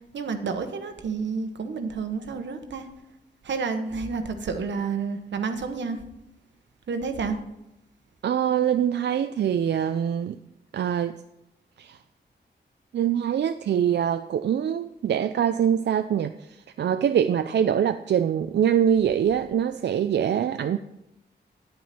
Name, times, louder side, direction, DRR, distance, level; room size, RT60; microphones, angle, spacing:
voice 1, 0.1-2.8 3.4-6.0 6.9-7.4, right 5 dB, 90° right, 7 dB, 1.1 m, -30 dB
voice 2, 8.2-10.4 10.7-11.1 11.8-12.0 12.9-20.8, right 9 dB, 70° right, 9 dB, 0.4 m, -24 dB
9.7 x 9.3 x 4.2 m, 0.88 s
wide cardioid pair, 110°, 18 cm